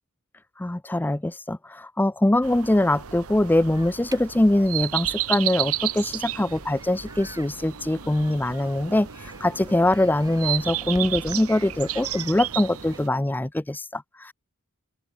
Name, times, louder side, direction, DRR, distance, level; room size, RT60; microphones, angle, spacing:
voice 1, 0.6-14.3, left 1 dB, 10° left, 0.4 m, -23 dB
sound 1, 2.4-13.1, right 13 dB, 80° right, 1.1 m, -32 dB
sound 2, 3.6-13.0, right 1 dB, 15° right, 4.9 m, -46 dB
open air
head